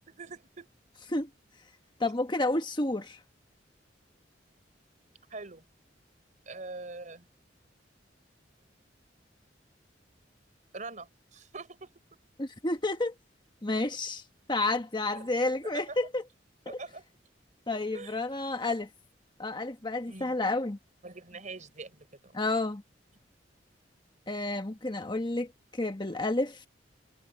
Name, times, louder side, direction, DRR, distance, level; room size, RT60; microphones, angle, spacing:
voice 1, 0.2-0.7 5.3-5.6 6.5-7.3 10.7-11.9 15.0-15.3 15.6-16.0 16.7-17.1 17.9-18.2 20.1-20.4 21.0-22.4, right 3 dB, 45° right, 3.8 m, -43 dB
voice 2, 2.0-3.2 12.4-13.1 13.6-14.2 14.5-16.2 16.7-16.8 17.7-18.9 19.4-20.8 22.3-22.8 24.3-25.5 25.7-26.7, left 2 dB, 25° left, 1.4 m, -30 dB
head